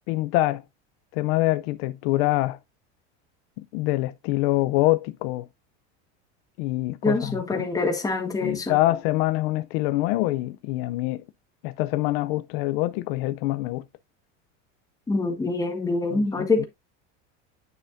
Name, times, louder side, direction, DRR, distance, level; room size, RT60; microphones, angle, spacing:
voice 1, 0.1-0.6 1.1-2.6 3.7-5.5 6.6-7.7 8.4-11.2 11.6-13.8 16.1-16.7, left 18 dB, 60° left, 0.5 m, -25 dB
voice 2, 7.0-8.7 15.1-16.7, left 3 dB, 10° left, 1.4 m, -25 dB
9.3 x 5.7 x 2.6 m
supercardioid pair, 150°, 34 cm